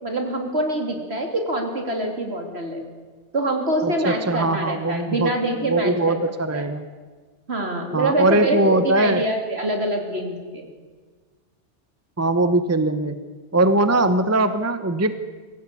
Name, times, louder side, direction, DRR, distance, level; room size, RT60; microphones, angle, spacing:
voice 1, 0.0-2.8 3.3-6.2 6.5-6.6 7.5-10.7, right 1 dB, 60° right, 3 dB, 3.4 m, -25 dB
voice 2, 3.8-5.3 5.7-6.8 7.9-9.2 12.2-13.2 13.5-15.1, right 2 dB, 15° right, 11 dB, 0.9 m, -21 dB
23.5 x 16.0 x 8.4 m, 1.4 s
omnidirectional pair, 1.2 m